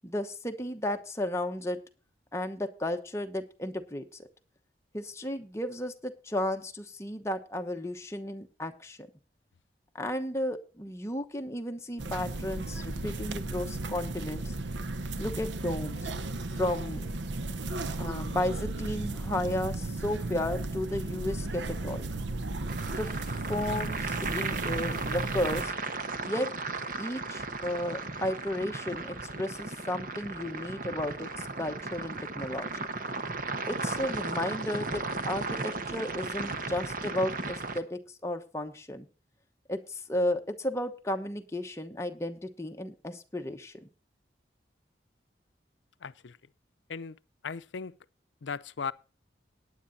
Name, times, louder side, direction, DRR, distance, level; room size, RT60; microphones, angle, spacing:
voice 1, 0.0-1.8 2.3-4.3 4.9-9.1 9.9-14.5 15.2-16.1 16.5-17.1 18.0-22.1 22.8-23.2 23.5-25.7 26.2-26.5 26.9-32.7 33.7-39.1 39.7-43.7, left 1 dB, 15° left, 1.0 m, -34 dB
sound 1, 12.0-25.6, right 2 dB, 80° right, 0.8 m, -35 dB
sound 2, 22.7-37.8, right 3 dB, 50° right, 1.1 m, -35 dB
voice 2, 46.0-46.4 46.9-47.2 47.4-48.0 48.4-48.9, left 5 dB, 80° left, 0.6 m, -37 dB
18.5 x 9.8 x 2.7 m
head